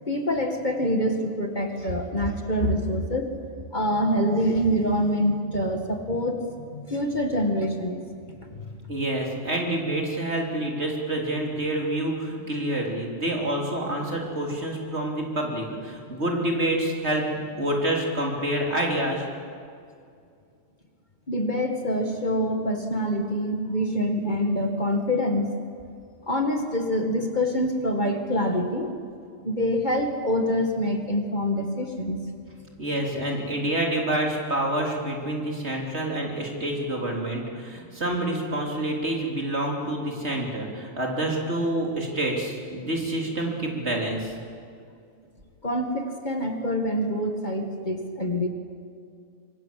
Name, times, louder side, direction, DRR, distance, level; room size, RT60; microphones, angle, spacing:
voice 1, 0.1-3.3 3.7-8.1 8.5-8.8 9.9-10.0 21.3-25.5 26.3-29.0 29.4-32.2 45.6-48.5, equal, 35° left, 4 dB, 2.0 m, -26 dB
voice 2, 8.9-19.3 32.8-44.3, right 1 dB, 50° right, 0 dB, 4.0 m, -27 dB
25.5 x 24.0 x 7.7 m, 2.3 s
omnidirectional pair, 1.4 m